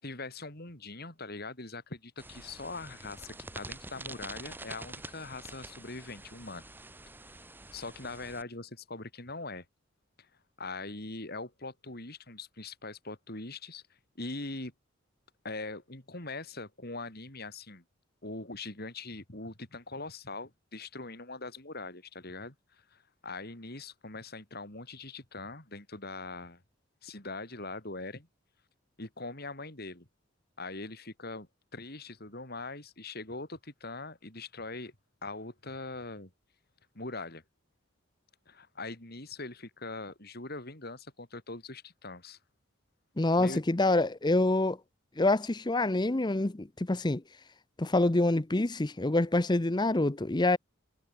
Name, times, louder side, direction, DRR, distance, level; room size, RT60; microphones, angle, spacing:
voice 1, 0.0-6.6 7.7-9.6 10.2-10.3 10.6-13.8 14.2-14.7 15.4-17.8 18.2-26.6 27.0-28.3 29.0-30.1 30.6-34.9 35.2-36.3 36.9-37.4 38.5-42.4 43.4-43.6, left 3 dB, 50° left, 4.4 m, -42 dB
sound 1, 2.2-8.4, right 2 dB, 10° right, 2.0 m, -46 dB
voice 2, 43.2-44.8 45.2-47.2 47.8-50.6, left 2 dB, 20° left, 0.7 m, -26 dB
head